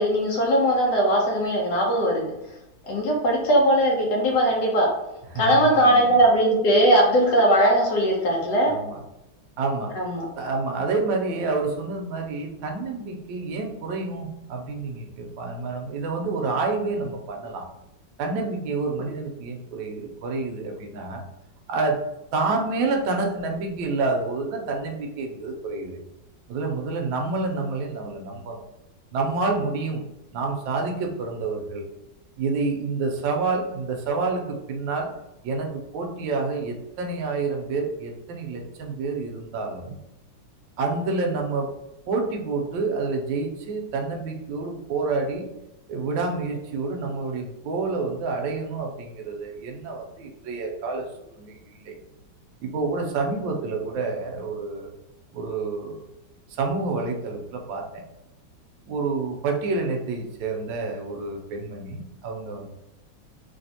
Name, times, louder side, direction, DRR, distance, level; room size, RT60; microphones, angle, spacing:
voice 1, 0.0-2.3 2.8-4.9 5.3-8.7 10.0-10.2, right 1 dB, 65° left, -1 dB, 1.1 m, -20 dB
voice 2, 5.3-6.1 8.7-9.0 9.6-9.9 10.4-17.7 18.2-21.2 21.7-22.0 22.3-26.0 26.5-28.6 29.1-30.0 30.3-31.9 32.4-35.1 35.4-40.0 40.8-41.7 42.1-45.5 45.9-51.1 51.4-51.9 52.6-54.9 55.3-56.0 56.5-58.0 58.9-62.7, right 3 dB, 75° right, 2 dB, 1.2 m, -28 dB
3.3 x 3.1 x 2.7 m, 0.91 s
omnidirectional pair, 2.3 m